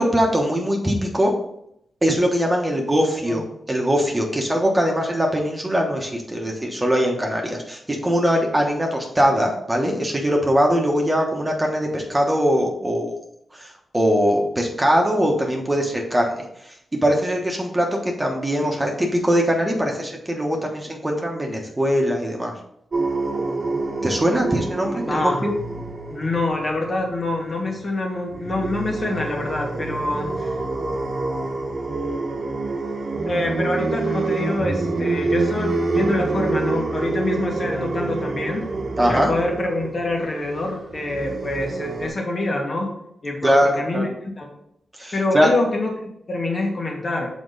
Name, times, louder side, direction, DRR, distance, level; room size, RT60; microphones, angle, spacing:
voice 1, 0.0-1.3 2.0-3.4 3.7-13.1 13.5-16.4 16.6-22.5 24.0-25.5 39.0-39.3 43.4-44.0 45.0-45.5, equal, 20° right, 0 dB, 1.3 m, -21 dB
sound 1, 22.9-28.0 28.3-42.1, right 3 dB, 55° right, 1.2 m, -27 dB
voice 2, 25.0-25.4 26.1-30.5 33.2-38.6 39.1-42.9 43.2-44.5 45.1-47.4, left 2 dB, 45° left, 0 dB, 1.7 m, -25 dB
6.0 x 4.2 x 4.0 m, 0.75 s
cardioid pair, 75°, 0 cm